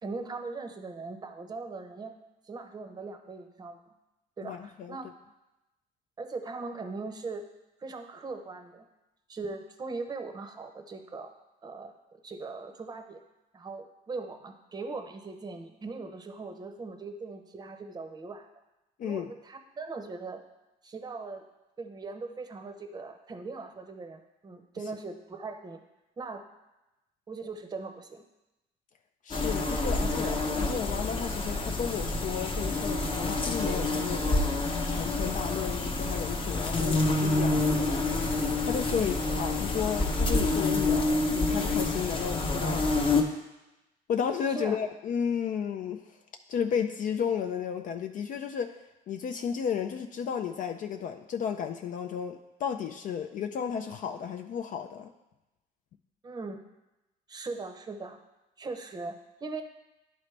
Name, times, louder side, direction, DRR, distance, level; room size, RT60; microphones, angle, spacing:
voice 1, 0.0-2.1 2.4-3.8 4.4-5.1 6.2-7.4 7.8-8.8 9.3-11.3 11.6-13.2 13.5-18.5 19.0-20.4 20.8-21.4 21.8-25.8 26.2-26.4 27.3-28.2 38.9-39.1 44.5-44.8 56.2-56.6 57.3-58.2 58.6-59.6, right 3 dB, 25° right, 6 dB, 0.7 m, -40 dB
voice 2, 4.4-5.0 19.0-19.3 29.2-38.1 38.6-43.0 44.1-46.2 46.5-48.8 49.1-55.1, left 7 dB, 50° left, 6 dB, 0.4 m, -33 dB
sound 1, 29.3-43.2, left 2 dB, 30° left, 0.9 m, -28 dB
11.0 x 4.0 x 3.3 m, 0.98 s
cardioid pair, 110°, 17 cm